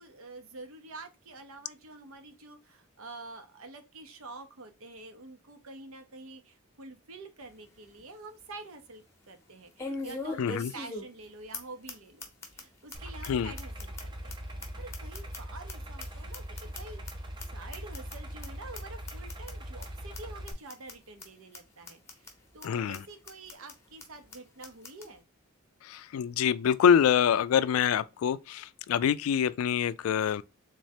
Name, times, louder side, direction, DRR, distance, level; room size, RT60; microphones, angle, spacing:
voice 1, 0.0-14.3 14.8-17.2 17.5-22.3 22.5-25.2, right 2 dB, 80° right, 0.8 m, -47 dB
sound 1, 7.4-7.5 8.0-8.1 9.8-11.2 11.5-11.6 11.9-12.0 12.2-12.6 12.9-13.0 13.2-13.3 13.6-15.7 16.0-17.1 17.4-17.5 17.7-18.1 18.4-18.5 18.7-18.8 19.1-19.5 19.8-19.9 20.1-20.2 20.5-20.9 21.2-21.3 21.5-21.6 21.9-22.3 22.6-22.7 22.9-23.0 23.3-23.7 24.0-24.1 24.3-24.4 24.6-25.1, left 3 dB, 15° left, 0.8 m, -40 dB
voice 2, 10.4-10.7 13.2-13.5 22.6-23.0 25.8-30.4, left 8 dB, 80° left, 0.3 m, -26 dB
Idling, 12.9-20.5, equal, 20° right, 0.5 m, -41 dB
3.6 x 3.2 x 2.7 m
head